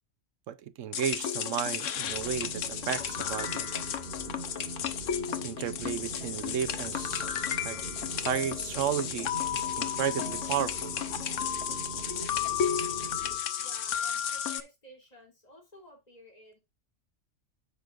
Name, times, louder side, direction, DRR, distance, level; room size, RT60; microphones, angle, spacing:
voice 1, 0.5-3.6 5.4-7.8 8.1-11.0, right 9 dB, 70° right, 1.0 m, -33 dB
sound 1, 0.9-14.6, left 9 dB, 75° left, 1.1 m, -33 dB
sound 2, 2.1-13.4, right 4 dB, 40° right, 1.6 m, -43 dB
voice 2, 13.6-16.6, equal, 30° left, 3.3 m, -53 dB
9.6 x 7.7 x 2.5 m
omnidirectional pair, 1.4 m